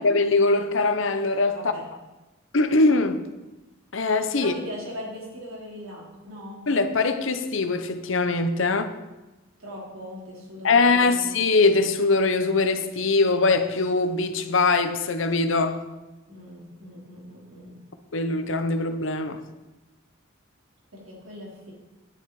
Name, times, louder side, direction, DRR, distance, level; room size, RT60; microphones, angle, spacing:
voice 1, 0.0-1.7 2.5-3.2 3.9-4.5 6.7-8.9 10.6-15.8 18.1-19.4, left 3 dB, 70° left, 0.9 m, -22 dB
voice 2, 1.5-1.9 4.4-6.6 9.6-11.3 16.3-17.7 20.9-21.7, equal, 90° right, 3.9 m, -40 dB
10.5 x 9.6 x 4.8 m
head